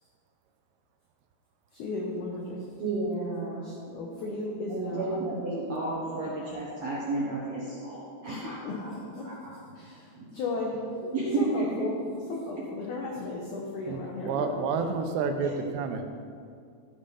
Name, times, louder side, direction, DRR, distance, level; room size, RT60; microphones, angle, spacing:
voice 1, 1.7-2.6 3.6-5.3 8.2-9.3 9.8-11.1 11.4-12.0 12.3-14.9, left 2 dB, 80° left, -1 dB, 1.8 m, -35 dB
voice 2, 2.8-4.3 4.7-8.9 9.2-9.3 10.2-10.4 10.9-11.9 15.4-16.0, right 2 dB, 65° right, -6 dB, 1.7 m, -32 dB
voice 3, 13.9-16.0, right 5 dB, 85° right, 6 dB, 2.9 m, -30 dB
13.5 x 5.3 x 5.5 m, 2.3 s
omnidirectional pair, 4.9 m